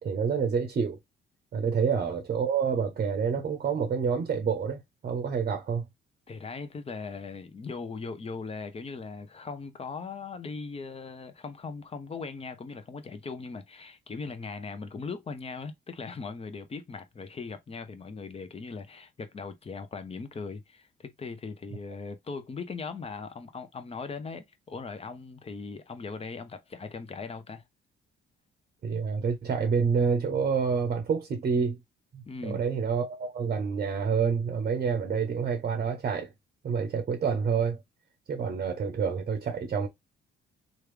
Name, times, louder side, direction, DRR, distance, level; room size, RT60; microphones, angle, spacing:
voice 1, 0.0-1.0 1.5-5.8 28.8-31.8 32.1-36.3 36.6-37.8 38.3-39.9, right 6 dB, 50° right, 0.7 m, -28 dB
voice 2, 6.3-27.6 32.3-32.6, left 4 dB, 30° left, 0.7 m, -39 dB
3.1 x 2.3 x 3.3 m
cardioid pair, 90°, 20 cm